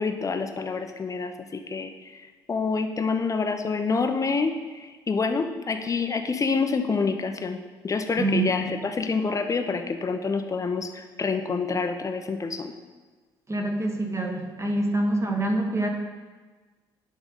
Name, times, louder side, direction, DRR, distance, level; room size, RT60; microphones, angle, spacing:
voice 1, 0.0-2.2 2.5-7.6 7.8-12.7, left 4 dB, 30° left, 7 dB, 0.7 m, -27 dB
voice 2, 8.2-8.7 13.5-15.9, right 2 dB, 25° right, 2 dB, 1.4 m, -26 dB
10.5 x 3.6 x 5.4 m, 1.4 s
figure-of-eight pair, 50°, 12 cm